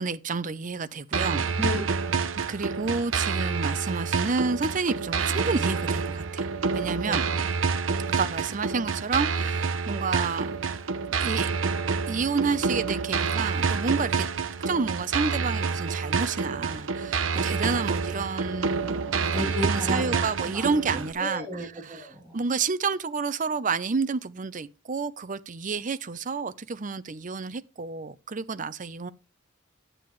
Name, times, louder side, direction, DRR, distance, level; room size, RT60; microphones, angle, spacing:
voice 1, 0.0-1.5 2.5-6.5 6.7-7.2 8.1-10.6 11.2-11.5 12.1-14.3 14.7-21.4 21.9-22.0 22.3-29.1, right 4 dB, 40° right, 0.6 m, -30 dB
sound 1, 1.1-21.1, right 5 dB, 80° right, 0.8 m, -28 dB
voice 2, 1.6-2.3 7.1-7.3 19.3-22.4, left 1 dB, 10° right, 3.0 m, -34 dB
10.0 x 8.5 x 3.2 m
head